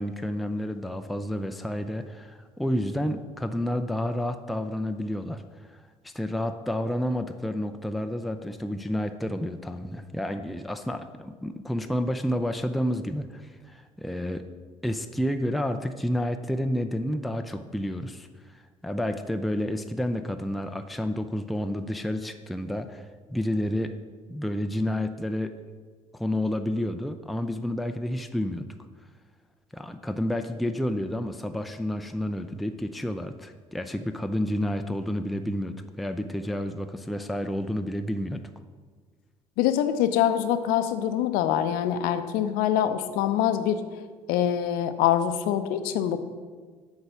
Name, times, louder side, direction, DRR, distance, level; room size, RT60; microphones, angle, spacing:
voice 1, 0.0-5.4 5.7-14.5 14.8-24.0 24.3-25.5 26.1-28.7 29.7-38.4, left 1 dB, ahead, 7 dB, 0.5 m, -30 dB
voice 2, 39.6-43.8 44.3-46.2, left 10 dB, 65° left, 10 dB, 0.6 m, -24 dB
8.0 x 4.8 x 6.8 m, 1.5 s
figure-of-eight pair, 55°, 16 cm